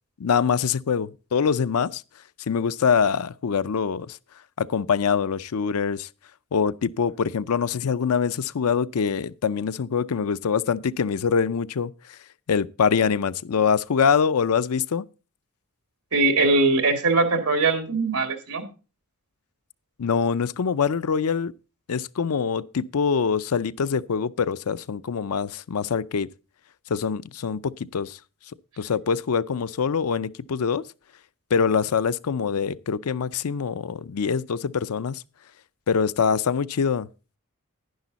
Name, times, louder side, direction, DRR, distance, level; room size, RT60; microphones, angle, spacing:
voice 1, 0.2-2.0 2.5-4.2 4.6-6.1 6.5-12.2 12.5-15.0 20.0-21.5 21.9-26.3 26.9-28.2 28.8-30.8 31.5-35.2 35.9-37.1, left 6 dB, 80° left, 0.5 m, -24 dB
voice 2, 16.1-18.6, right 3 dB, 80° right, 2.3 m, -21 dB
10.5 x 10.5 x 4.0 m
head